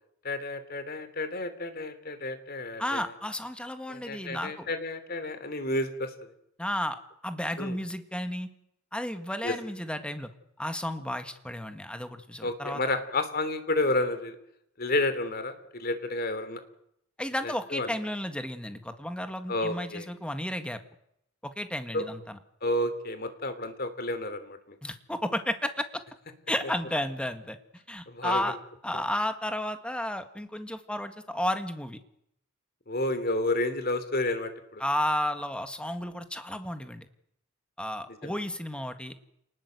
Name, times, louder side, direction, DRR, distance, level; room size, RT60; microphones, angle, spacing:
voice 1, 0.2-3.1 3.9-6.3 7.6-7.8 9.4-9.5 12.4-14.4 14.8-16.6 17.4-17.9 19.5-20.1 21.9-22.1 22.6-24.8 28.1-28.5 28.9-29.0 32.9-34.8 38.2-38.3, left 2 dB, 45° left, 10 dB, 3.1 m, -31 dB
voice 2, 2.8-4.7 6.6-8.5 8.9-10.3 10.6-13.0 17.2-20.8 21.4-22.4 24.8-26.0 26.5-28.6 28.8-32.0 34.8-37.1 37.8-39.1, left 1 dB, 5° left, 8 dB, 1.8 m, -33 dB
29.0 x 19.5 x 8.1 m, 0.76 s
head